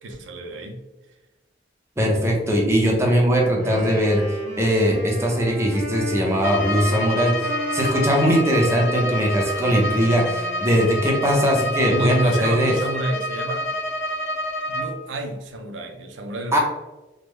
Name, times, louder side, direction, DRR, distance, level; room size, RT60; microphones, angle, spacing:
voice 1, 0.0-0.8 11.9-13.7 14.7-16.6, right 1 dB, 80° right, 4 dB, 0.5 m, -29 dB
voice 2, 2.0-4.2 4.6-12.7 16.5-16.6, equal, 15° right, -1 dB, 0.6 m, -20 dB
Wind instrument woodwind instrument, 3.5-11.2, equal, 45° right, 1.0 m, -34 dB
Bowed string instrument, 6.4-15.0, equal, 70° left, 0.6 m, -28 dB
3.6 x 2.0 x 3.1 m, 1.1 s
head